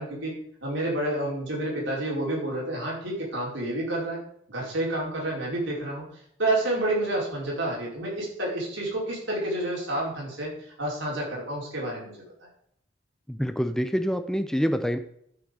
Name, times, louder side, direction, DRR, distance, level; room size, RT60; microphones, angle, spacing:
voice 1, 0.0-4.2 4.5-6.0 6.4-10.5 10.8-12.2, right 1 dB, 75° right, -3 dB, 5.1 m, -29 dB
voice 2, 13.3-15.0, equal, 5° left, 8 dB, 0.8 m, -26 dB
11.5 x 5.9 x 6.7 m, 0.70 s
head